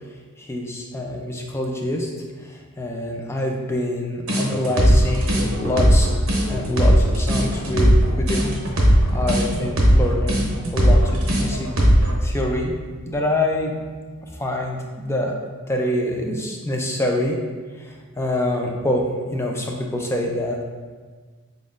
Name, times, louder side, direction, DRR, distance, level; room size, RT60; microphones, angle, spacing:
voice 1, 0.4-2.1 2.4-6.1 6.5-7.9 8.2-8.5 8.9-10.4 10.7-11.7 12.2-12.7 13.1-13.7 14.2-15.4 15.7-17.4 17.8-19.0 19.3-20.6, left 1 dB, 10° left, 0 dB, 0.4 m, -25 dB
sound 1, 4.3-12.1, equal, 70° right, 0.8 m, -17 dB
3.9 x 3.9 x 2.5 m, 1.5 s
head